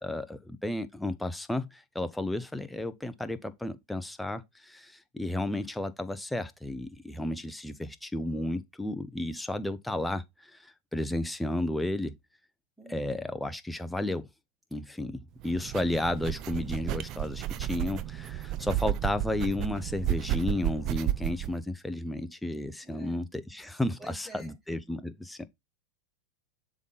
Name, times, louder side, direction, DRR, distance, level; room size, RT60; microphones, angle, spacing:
voice 1, 0.0-12.1 12.9-14.3 14.7-25.5, left 1 dB, 5° left, 0.7 m, -33 dB
voice 2, 12.8-13.3 22.8-23.2 24.0-24.5, right 2 dB, 10° right, 3.6 m, -49 dB
sound 1, 15.4-21.5, right 13 dB, 45° right, 0.6 m, -32 dB
7.2 x 3.9 x 4.1 m
hypercardioid pair, 115°, 0 cm